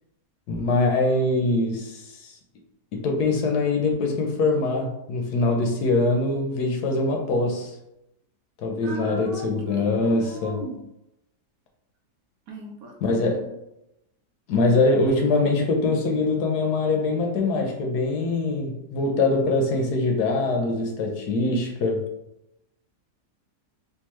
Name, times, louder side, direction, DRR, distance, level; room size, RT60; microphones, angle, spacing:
voice 1, 0.5-2.3 2.9-7.7 8.6-10.7 13.0-13.5 14.5-22.1, left 2 dB, 70° left, 1.2 m, -23 dB
voice 2, 8.8-10.8 12.5-13.5, right 2 dB, 65° right, 1.0 m, -38 dB
3.7 x 2.8 x 3.0 m
omnidirectional pair, 1.8 m